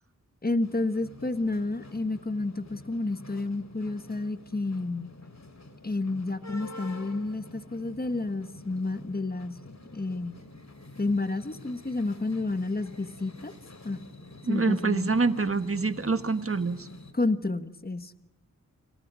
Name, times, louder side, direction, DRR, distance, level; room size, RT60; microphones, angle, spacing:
voice 1, 0.4-5.1 5.8-9.6 9.9-10.4 11.0-13.5 13.8-14.0 14.5-15.1 17.1-18.2, left 2 dB, 30° left, 10 dB, 1.5 m, -30 dB
sound 1, 0.6-17.1, left 2 dB, 60° left, 3.2 m, -48 dB
voice 2, 14.4-16.9, right 4 dB, 45° right, 10 dB, 1.6 m, -26 dB
29.5 x 27.0 x 6.4 m, 0.78 s
wide cardioid pair, 60°, 32 cm